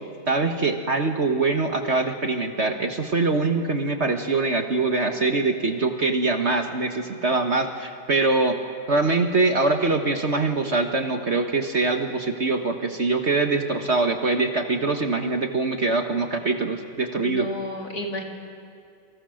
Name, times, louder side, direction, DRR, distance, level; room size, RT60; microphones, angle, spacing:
voice 1, 0.3-8.6 8.9-17.5, right 3 dB, 40° right, 5 dB, 1.5 m, -23 dB
voice 2, 17.1-18.2, left 1 dB, 60° left, 1 dB, 3.1 m, -31 dB
29.5 x 23.5 x 6.5 m, 2.5 s
omnidirectional pair, 1.9 m